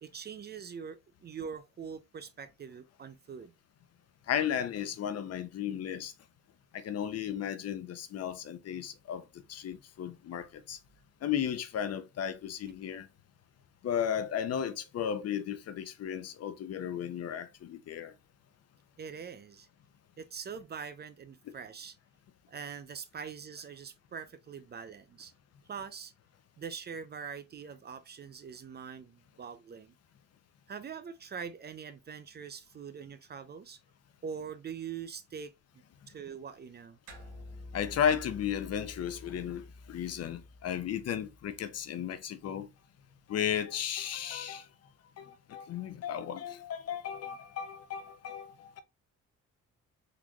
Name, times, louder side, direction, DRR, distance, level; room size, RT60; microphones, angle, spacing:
voice 1, 0.0-3.5 19.0-19.7 20.2-22.0 22.5-25.3 25.7-26.1 26.6-29.9 30.7-33.8 34.2-35.5 36.1-37.0, right 6 dB, 35° right, 0.4 m, -43 dB
voice 2, 4.3-6.1 6.7-10.8 11.2-13.1 13.8-18.1 37.7-42.7 43.3-44.7 45.2-48.8, left 9 dB, 55° left, 0.6 m, -34 dB
sound 1, 37.1-41.8, left 2 dB, 85° right, 1.3 m, -49 dB
3.8 x 3.0 x 2.2 m
cardioid pair, 90°, 30 cm